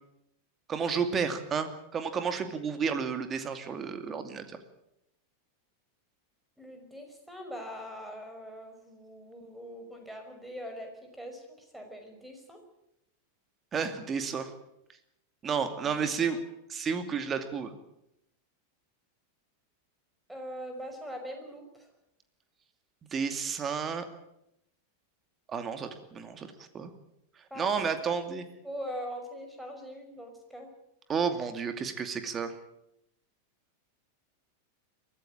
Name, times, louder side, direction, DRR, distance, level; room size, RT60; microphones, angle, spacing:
voice 1, 0.7-4.6 13.7-14.5 15.4-16.4 16.7-17.8 23.1-24.1 25.5-26.5 26.7-26.9 27.6-28.4 31.1-32.5, right 6 dB, 25° right, 8 dB, 2.5 m, -31 dB
voice 2, 6.6-12.6 15.8-16.4 20.3-21.9 27.5-28.1 28.6-30.7, equal, 5° right, 4 dB, 5.6 m, -42 dB
23.0 x 15.0 x 9.0 m, 0.82 s
figure-of-eight pair, 90°, 0 cm